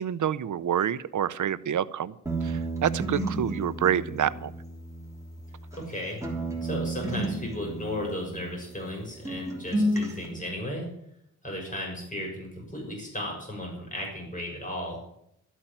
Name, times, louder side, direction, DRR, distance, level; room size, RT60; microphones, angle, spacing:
voice 1, 0.0-2.1 2.4-4.5, right 9 dB, 75° right, 17 dB, 0.7 m, -27 dB
sound 1, 2.3-5.9 6.2-9.0 9.2-10.3, right 1 dB, 10° right, 3.1 m, -32 dB
voice 2, 5.7-6.2 6.6-10.9 11.4-15.0, left 1 dB, 25° left, -1 dB, 6.5 m, -35 dB
13.0 x 8.7 x 9.1 m, 0.75 s
wide cardioid pair, 160°, 30 cm